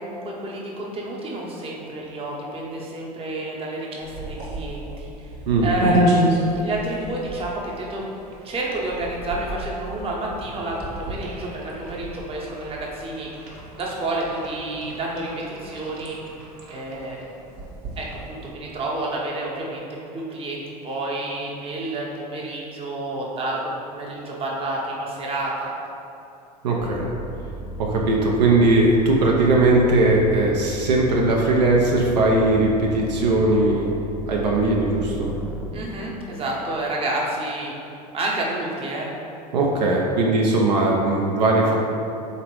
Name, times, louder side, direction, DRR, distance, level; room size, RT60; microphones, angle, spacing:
voice 1, 0.0-5.3 5.6-8.0 8.4-13.3 13.8-16.2 16.7-17.3 18.0-19.9 20.1-25.7 35.7-37.7 38.1-39.1, right 2 dB, 25° right, -3 dB, 0.8 m, -29 dB
sound 1, 4.0-18.5, equal, 55° right, 0.9 m, -30 dB
voice 2, 26.6-27.1 27.8-33.9 34.3-35.3 39.5-41.7, right 2 dB, 80° right, -2 dB, 0.5 m, -19 dB
sound 2, 26.8-35.7, left 1 dB, 5° right, 0.4 m, -35 dB
3.9 x 2.9 x 3.0 m, 2.8 s
hypercardioid pair, 75°, 21 cm